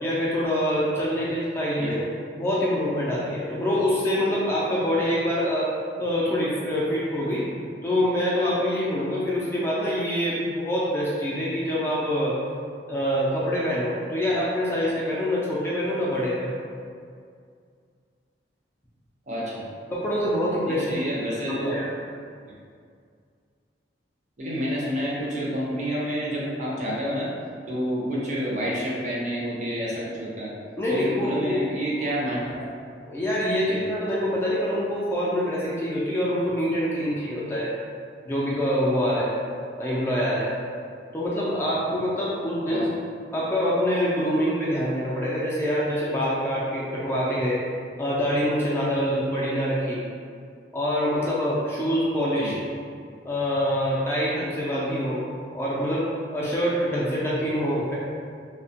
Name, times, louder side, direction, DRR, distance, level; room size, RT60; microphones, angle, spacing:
voice 1, 0.0-2.0 2.4-5.7 6.0-7.5 7.8-12.4 12.9-16.5 19.9-20.9 21.5-21.9 30.8-31.6 33.1-37.7 38.3-39.3 39.8-40.5 41.1-42.8 43.3-47.6 48.0-50.0 50.7-52.6 53.2-55.2 55.5-57.9, equal, 15° left, -7 dB, 0.3 m, -25 dB
voice 2, 19.3-19.7 20.7-21.8 24.4-27.3 27.7-30.6 30.9-32.7 33.7-33.8 42.7-42.9 52.4-52.6, equal, 40° right, -5 dB, 0.5 m, -29 dB
2.8 x 2.1 x 2.7 m, 2.2 s
head